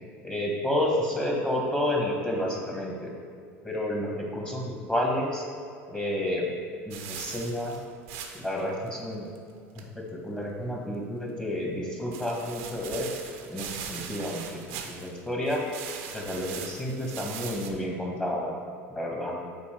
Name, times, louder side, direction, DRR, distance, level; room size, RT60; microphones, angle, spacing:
voice 1, 0.2-3.1 3.6-5.5 5.9-6.5 6.9-7.8 8.3-9.3 9.8-13.1 13.5-14.6 14.9-15.6 16.1-18.6 18.9-19.4, left 1 dB, 10° left, -1 dB, 1.6 m, -30 dB
sound 1, 6.9-8.6 8.9-9.0 9.4-9.5 9.8-9.9 12.1-15.2 15.5-17.7, right 7 dB, 80° right, 0.7 m, -40 dB
7.0 x 4.4 x 4.5 m, 2.3 s
supercardioid pair, 95°, 7 cm